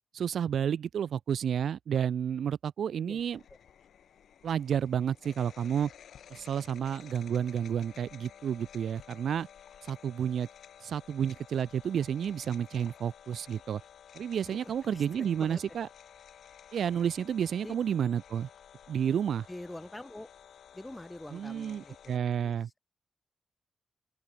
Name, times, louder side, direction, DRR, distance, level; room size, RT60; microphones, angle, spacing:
voice 1, 0.1-3.4 4.4-5.9 6.3-9.5 9.8-10.5 10.8-13.8 14.1-15.9 16.7-18.5 18.9-19.5 21.3-22.7, right 8 dB, 65° right, 0.3 m, -31 dB
sound 1, 3.2-22.2, left 9 dB, 70° left, 0.7 m, -53 dB
voice 2, 14.5-15.6 17.6-17.8 19.5-20.3 20.7-22.6, left 1 dB, 10° left, 0.9 m, -45 dB
open air
wide cardioid pair, 175°, 0 cm